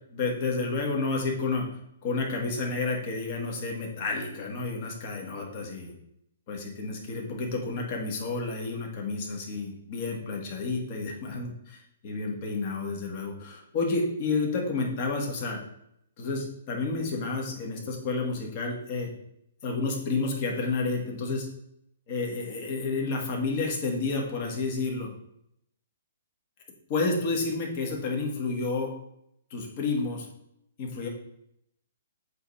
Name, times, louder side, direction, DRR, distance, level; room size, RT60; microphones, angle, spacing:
voice 1, 0.1-1.7 2.0-5.9 6.5-15.6 16.2-19.1 19.6-21.5 22.1-25.1 26.9-28.9 29.5-30.3 30.8-31.1, left 3 dB, 30° left, 0 dB, 1.5 m, -30 dB
8.0 x 3.2 x 5.5 m, 0.76 s
hypercardioid pair, 170°, 0 cm